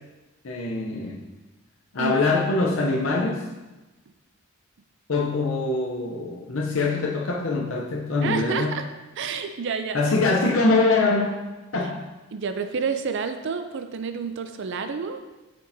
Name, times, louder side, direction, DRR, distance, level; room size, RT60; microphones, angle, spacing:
voice 1, 0.4-1.2 1.9-3.5 5.1-8.8 9.9-11.4 11.7-12.0, left 3 dB, 65° left, 0 dB, 0.7 m, -23 dB
voice 2, 8.2-8.9 9.2-10.0 12.3-15.2, right 5 dB, 55° right, 8 dB, 0.4 m, -29 dB
8.3 x 6.4 x 2.7 m, 1.1 s
head